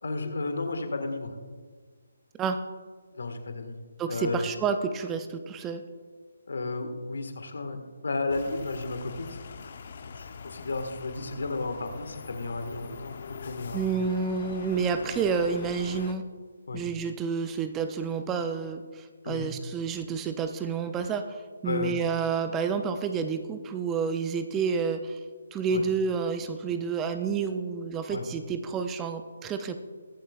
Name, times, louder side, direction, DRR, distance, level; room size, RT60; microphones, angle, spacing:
voice 1, 0.0-1.4 3.1-3.7 4.1-4.4 6.5-13.9 16.7-16.8 19.2-19.5 21.6-21.9 25.7-25.8 28.1-28.2, left 3 dB, 70° left, 6 dB, 1.6 m, -33 dB
voice 2, 4.0-5.8 13.7-16.2 16.7-25.2 25.5-29.8, right 5 dB, 15° right, 8 dB, 0.5 m, -29 dB
sound 1, 8.3-16.1, left 5 dB, 50° left, 0.7 m, -43 dB
21.5 x 7.3 x 2.4 m, 1.5 s
figure-of-eight pair, 155°, 0 cm